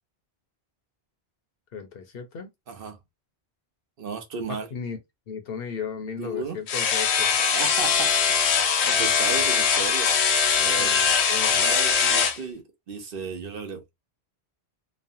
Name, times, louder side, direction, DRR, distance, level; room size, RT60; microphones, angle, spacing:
voice 1, 1.7-2.5 4.5-5.0 5.3-7.3 9.0-9.4 10.8-11.6, left 6 dB, 65° left, 0.9 m, -36 dB
voice 2, 2.7-3.0 4.0-4.7 6.2-6.6 7.5-10.1 10.6-11.0 11.5-13.8, right 5 dB, 60° right, 0.9 m, -35 dB
sound 1, 6.7-12.4, left 6 dB, 90° left, 0.9 m, -22 dB
3.1 x 2.1 x 2.6 m
omnidirectional pair, 1.1 m